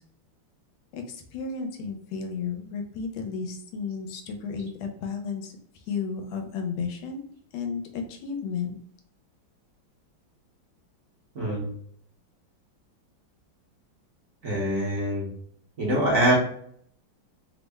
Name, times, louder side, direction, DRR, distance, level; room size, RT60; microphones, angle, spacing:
voice 1, 0.9-5.5 5.9-7.2 7.5-8.8, left 5 dB, 90° left, 4 dB, 1.4 m, -33 dB
voice 2, 11.3-11.7 14.4-15.3 15.8-16.4, right 1 dB, 55° right, -5 dB, 1.1 m, -24 dB
3.5 x 2.1 x 3.3 m, 0.64 s
omnidirectional pair, 2.2 m